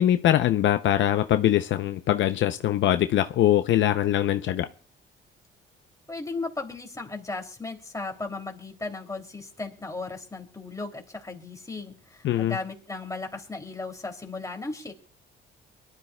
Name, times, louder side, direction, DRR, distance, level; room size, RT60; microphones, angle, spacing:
voice 1, 0.0-4.7 12.2-12.6, left 12 dB, 70° left, 0.6 m, -22 dB
voice 2, 6.1-14.9, left 3 dB, 15° left, 2.8 m, -36 dB
23.0 x 12.0 x 2.3 m
cardioid pair, 90°, 20 cm